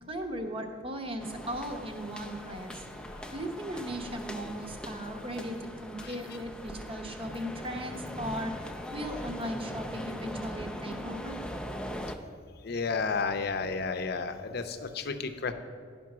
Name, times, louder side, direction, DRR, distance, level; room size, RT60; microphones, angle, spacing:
voice 1, 0.1-2.8 3.3-11.4, equal, 30° right, 4 dB, 0.9 m, -37 dB
sound 1, 1.2-12.2, equal, 5° left, 0.5 m, -40 dB
voice 2, 12.6-15.5, left 4 dB, 55° left, 8 dB, 0.6 m, -32 dB
10.5 x 5.3 x 6.0 m, 2.2 s
head